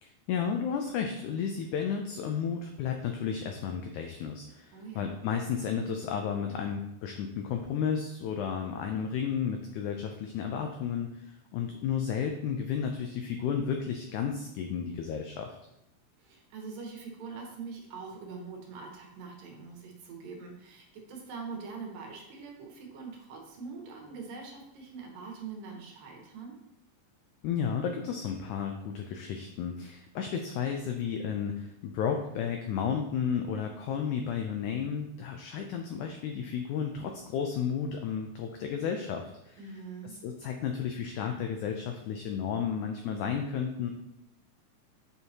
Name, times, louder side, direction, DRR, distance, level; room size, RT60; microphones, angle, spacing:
voice 1, 0.0-15.6 27.4-39.6 40.2-43.9, left 7 dB, 90° left, 4 dB, 1.7 m, -33 dB
voice 2, 4.7-5.2 16.2-26.6 39.6-40.1, right 5 dB, 75° right, 0 dB, 2.8 m, -43 dB
8.3 x 4.6 x 2.8 m, 0.86 s
omnidirectional pair, 4.1 m